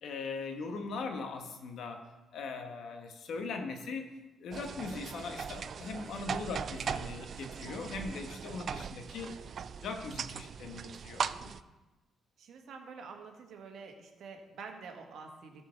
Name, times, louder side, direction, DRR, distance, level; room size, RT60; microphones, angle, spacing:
voice 1, 0.0-2.1 2.3-4.1 4.4-9.3 9.8-11.6, left 4 dB, 70° left, 5 dB, 1.3 m, -40 dB
sound 1, 4.5-11.6, right 7 dB, 55° right, 0.3 m, -39 dB
voice 2, 9.1-9.6 12.4-15.7, right 5 dB, 70° right, 3 dB, 1.4 m, -48 dB
13.5 x 4.6 x 5.8 m, 1.1 s
cardioid pair, 90°, 0 cm